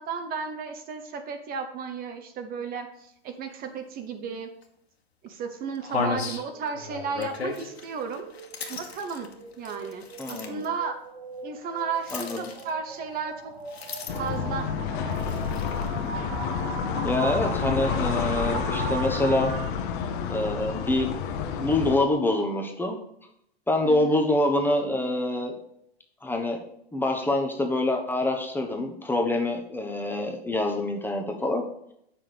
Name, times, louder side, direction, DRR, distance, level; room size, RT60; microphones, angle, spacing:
voice 1, 0.0-4.5 5.2-8.3 8.7-9.3 9.6-11.0 11.4-13.5 14.2-14.7 23.8-24.2, right 5 dB, 30° right, 7 dB, 0.9 m, -34 dB
sound 1, 4.6-4.7 5.3-5.4 5.8-10.7 12.0-13.0 13.7-14.4 15.1-15.9, left 5 dB, 85° left, 1.5 m, -35 dB
sound 2, 6.5-19.7, right 6 dB, 65° right, 1.7 m, -39 dB
voice 2, 10.2-10.6 12.1-12.4 17.0-19.5 20.3-21.1 21.6-23.0 23.7-25.6 26.2-26.6 26.9-31.6, left 1 dB, 5° left, 2 dB, 1.0 m, -26 dB
sound 3, 14.1-22.0, left 7 dB, 55° left, 1.2 m, -29 dB
7.5 x 6.1 x 5.1 m, 0.74 s
hypercardioid pair, 110°, 31 cm